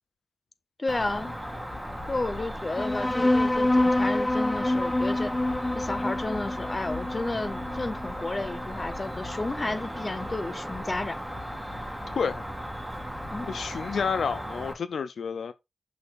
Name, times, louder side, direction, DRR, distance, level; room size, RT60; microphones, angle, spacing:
voice 1, 0.8-1.3 2.1-5.3 5.7-11.2 13.3-13.6, left 2 dB, 35° left, 1.4 m, -32 dB
Cricket, 0.9-14.7, equal, ahead, 2.8 m, -36 dB
sound 1, 2.8-9.7, left 1 dB, 20° left, 0.5 m, -27 dB
voice 2, 12.2-12.5 13.5-15.5, left 6 dB, 80° left, 0.5 m, -29 dB
8.2 x 6.4 x 2.6 m
cardioid pair, 50°, 0 cm